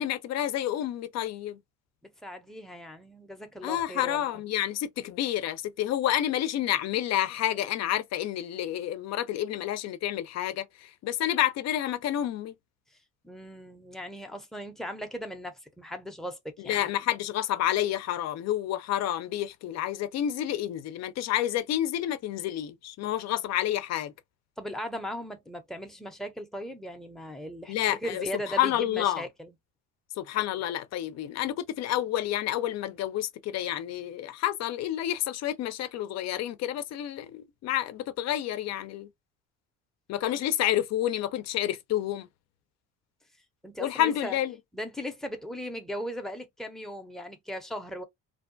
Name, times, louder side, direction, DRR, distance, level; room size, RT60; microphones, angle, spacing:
voice 1, 0.0-1.6 3.6-12.5 16.6-24.1 27.7-29.2 30.2-39.1 40.1-42.3 43.8-44.5, left 12 dB, 65° left, 0.5 m, -29 dB
voice 2, 2.2-4.4 13.2-16.8 24.6-29.5 43.6-44.4 44.7-48.0, equal, ahead, 0.6 m, -38 dB
2.6 x 2.2 x 2.6 m
cardioid pair, 130°, 29 cm